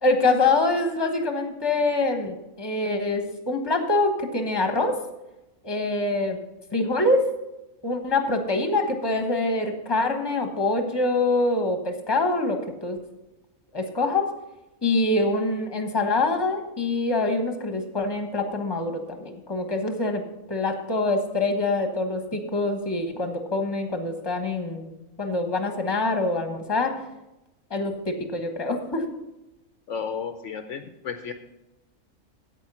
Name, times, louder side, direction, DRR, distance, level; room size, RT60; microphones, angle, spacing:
voice 1, 0.0-4.9 5.6-6.4 6.7-7.2 7.8-13.0 13.7-14.2 14.8-20.2 20.5-24.9 25.2-26.9 27.7-29.0, left 2 dB, 20° left, 5 dB, 1.2 m, -25 dB
voice 2, 29.9-31.3, left 6 dB, 65° left, 8 dB, 1.0 m, -33 dB
9.2 x 8.4 x 5.6 m, 0.95 s
omnidirectional pair, 1.4 m